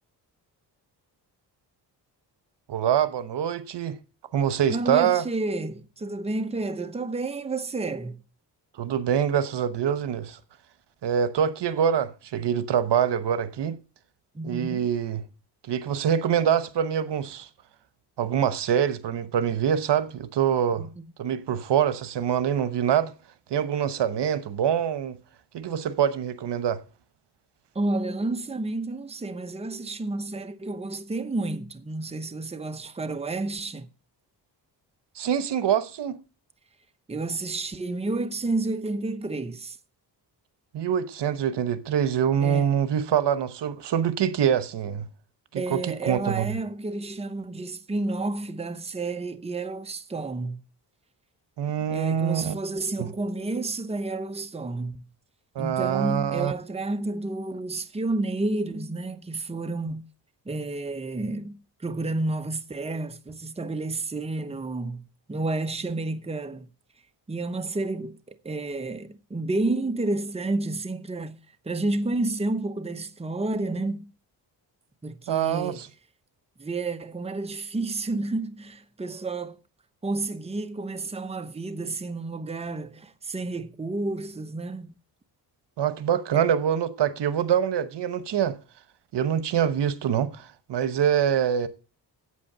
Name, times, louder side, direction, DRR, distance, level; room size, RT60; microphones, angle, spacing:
voice 1, 2.7-4.0 4.3-5.2 8.8-10.4 11.0-13.8 14.4-15.2 15.7-17.5 18.2-20.9 21.2-23.1 23.5-25.2 25.5-26.8 35.2-36.2 40.7-45.1 45.5-46.5 51.6-52.5 53.0-53.1 55.5-56.5 75.3-75.9 85.8-88.6 89.1-91.7, right 9 dB, 75° right, 1.0 m, -25 dB
voice 2, 4.7-8.2 14.3-14.8 20.8-20.9 27.7-33.9 37.1-39.8 42.4-42.7 45.6-50.6 51.9-55.0 55.6-60.0 60.5-66.7 67.3-71.4 71.6-74.1 75.0-75.8 76.6-79.6 80.0-84.9, right 2 dB, 15° right, 0.8 m, -30 dB
8.5 x 8.2 x 6.6 m
cardioid pair, 95°, 42 cm